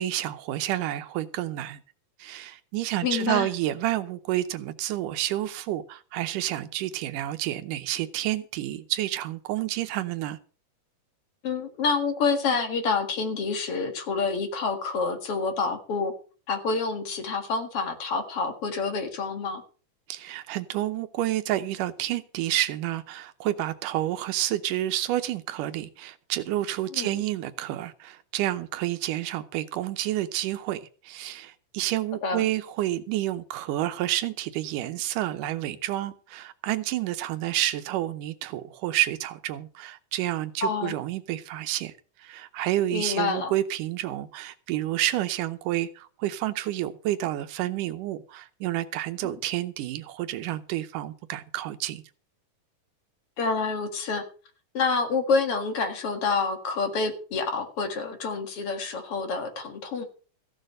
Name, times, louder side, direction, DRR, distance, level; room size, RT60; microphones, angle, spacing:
voice 1, 0.0-1.8 2.2-10.4 20.1-41.9 42.2-52.0, right 14 dB, 85° right, 2.4 m, -29 dB
voice 2, 3.0-3.5 11.4-16.1 16.5-19.6 26.9-27.2 32.2-32.5 40.6-41.0 42.9-43.5 49.2-49.3 53.4-54.2 54.7-60.0, left 4 dB, 50° left, 2.5 m, -28 dB
15.0 x 6.6 x 7.6 m
omnidirectional pair, 3.6 m